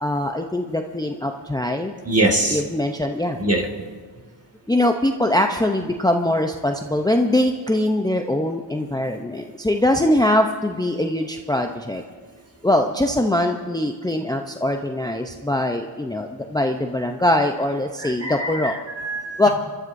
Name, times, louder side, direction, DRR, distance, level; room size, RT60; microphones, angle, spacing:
voice 1, 0.0-1.9 2.5-3.4 4.7-12.0 12.6-18.7 19.4-19.5, left 1 dB, 10° left, 4 dB, 0.7 m, -22 dB
voice 2, 2.1-2.6 3.4-3.7 18.0-19.5, right 1 dB, 30° right, 1 dB, 1.9 m, -23 dB
27.0 x 12.5 x 2.7 m, 1.5 s
cardioid pair, 55°, 44 cm